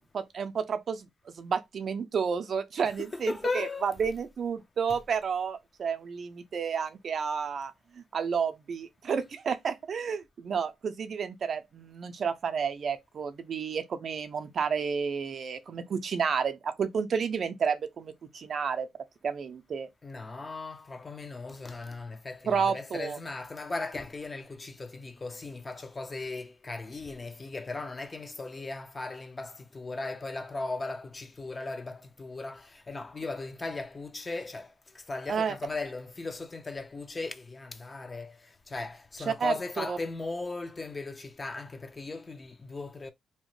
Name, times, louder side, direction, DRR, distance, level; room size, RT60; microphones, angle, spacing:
voice 1, 0.0-18.9 19.2-19.9 22.5-23.2 35.3-35.5 39.3-40.0, right 6 dB, 50° right, 0.4 m, -31 dB
voice 2, 2.8-4.0 20.0-43.1, left 3 dB, 25° left, 0.4 m, -37 dB
2.8 x 2.1 x 3.1 m
cardioid pair, 90°, 0 cm